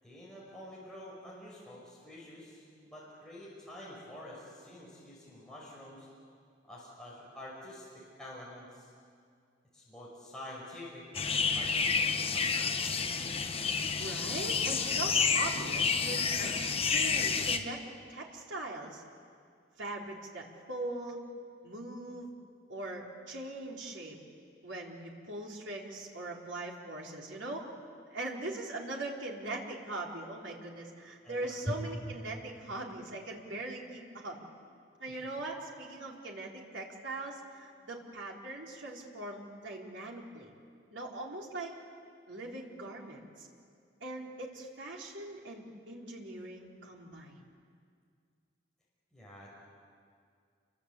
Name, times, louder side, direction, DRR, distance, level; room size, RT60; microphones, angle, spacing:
voice 1, 0.0-6.1 6.6-8.9 9.7-13.0 31.2-32.0 49.1-49.5, equal, 5° left, -6 dB, 5.7 m, -46 dB
sound 1, 11.1-17.6, left 5 dB, 30° left, 1.1 m, -30 dB
voice 2, 14.0-17.8 18.1-19.0 19.8-21.2 21.6-22.3 22.7-24.2 24.6-27.7 28.1-34.4 35.0-40.5 40.9-41.8 42.3-43.5 44.0-47.4, right 2 dB, 80° right, -1 dB, 4.0 m, -41 dB
29.0 x 23.0 x 8.4 m, 2.3 s
head